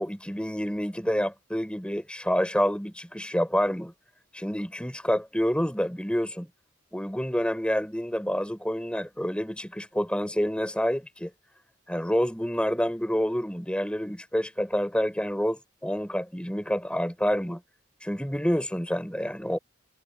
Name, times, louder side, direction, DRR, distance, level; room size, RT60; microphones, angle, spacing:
voice 1, 0.0-3.9 4.3-6.5 6.9-11.3 11.9-17.6 18.0-19.6, equal, 5° left, 4.9 m, -28 dB
head